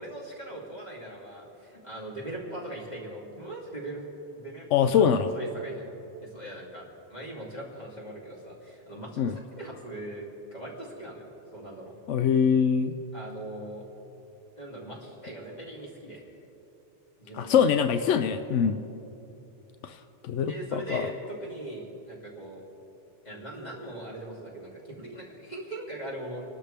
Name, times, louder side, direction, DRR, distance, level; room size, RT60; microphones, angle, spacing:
voice 1, 0.0-5.8 6.2-12.0 13.1-13.8 14.6-16.2 17.2-17.8 20.5-22.6 23.2-26.4, right 1 dB, 35° left, -4 dB, 3.0 m, -40 dB
voice 2, 4.7-5.3 9.2-9.3 12.1-12.9 17.3-18.8 19.8-21.1, left 7 dB, 90° left, 9 dB, 0.9 m, -24 dB
27.0 x 12.0 x 3.4 m, 3.0 s
omnidirectional pair, 1.2 m